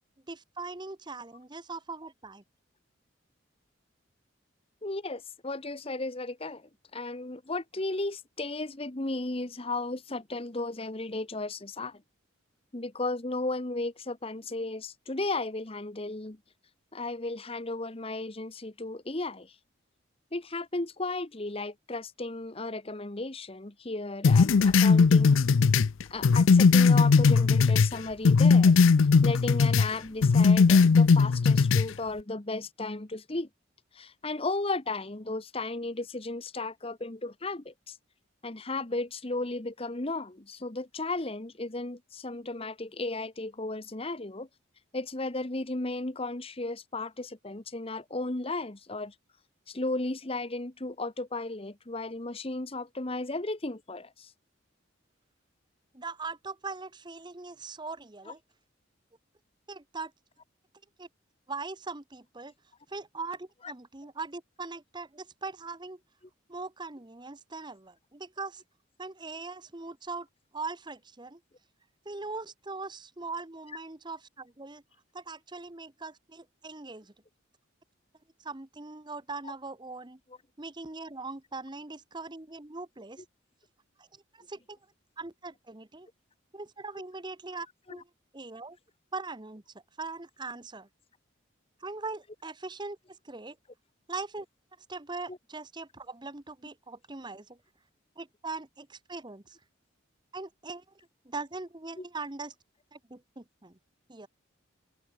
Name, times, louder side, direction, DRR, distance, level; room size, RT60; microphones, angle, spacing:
voice 1, 0.3-2.4 55.9-58.4 59.7-60.1 61.0-61.1 61.5-62.5 62.9-66.0 66.5-68.6 69.0-70.3 70.5-71.4 72.0-74.8 75.1-77.1 78.4-80.2 80.6-83.2 84.0-84.8 85.2-86.1 86.5-88.1 88.3-88.8 89.1-89.6 90.0-90.9 91.8-93.6 94.1-94.5 94.9-97.6 98.2-99.6 100.3-100.8 101.2-102.5 102.9-103.8 104.1-104.3, right 3 dB, 20° right, 1.1 m, -40 dB
voice 2, 4.8-12.0 12.7-16.4 16.9-19.5 20.3-25.5 26.1-28.8 29.2-33.5 33.9-38.0 38.4-44.5 44.9-49.1 49.7-54.3 87.9-88.0 95.3-95.4 102.0-102.1, left 2 dB, 30° left, 1.2 m, -35 dB
sound 1, 24.2-27.9 28.3-29.9 30.2-31.9, left 4 dB, 80° left, 0.5 m, -19 dB
open air
head